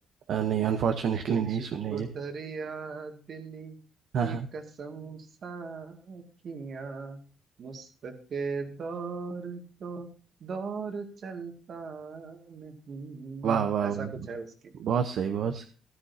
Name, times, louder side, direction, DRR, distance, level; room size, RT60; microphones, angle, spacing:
voice 1, 0.3-2.1 4.1-4.5 13.4-14.1 14.8-15.7, right 7 dB, 70° right, 7 dB, 0.8 m, -28 dB
voice 2, 1.3-3.8 4.2-7.2 7.6-10.1 10.4-14.7, right 4 dB, 55° right, 5 dB, 2.1 m, -39 dB
14.0 x 12.5 x 2.7 m, 0.39 s
cardioid pair, 100°, 0 cm